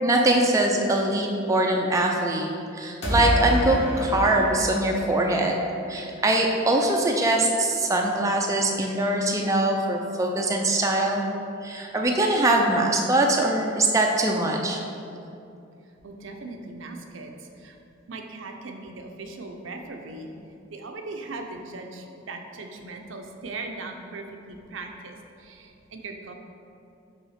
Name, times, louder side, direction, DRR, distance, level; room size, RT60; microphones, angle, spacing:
voice 1, 0.0-5.5 5.9-11.2 11.6-14.8, right 1 dB, 15° right, 0 dB, 0.4 m, -22 dB
sound 1, 3.0-5.9, equal, 35° left, 1.5 m, -28 dB
voice 2, 16.0-17.8 18.1-20.3 20.7-26.3, right 3 dB, 70° right, 4 dB, 0.6 m, -39 dB
5.6 x 3.6 x 5.7 m, 2.6 s
head